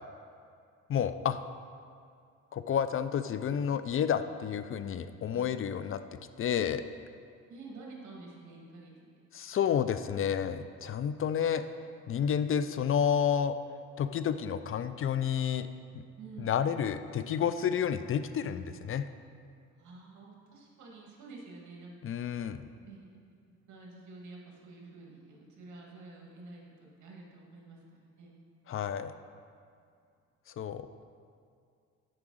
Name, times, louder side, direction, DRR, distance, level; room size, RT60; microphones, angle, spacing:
voice 1, 0.9-1.4 2.5-6.0 6.4-6.8 9.3-11.6 12.1-13.5 14.0-15.7 15.9-16.0 16.4-19.0 22.0-22.6 28.7-29.1 30.6-30.9, left 8 dB, 45° left, 11 dB, 0.4 m, -30 dB
voice 2, 7.5-9.2 14.4-14.5 16.2-16.5 19.7-22.2 22.8-28.4, right 3 dB, 75° right, -2 dB, 2.0 m, -50 dB
8.7 x 4.7 x 6.3 m, 2.3 s
cardioid pair, 90°, 30 cm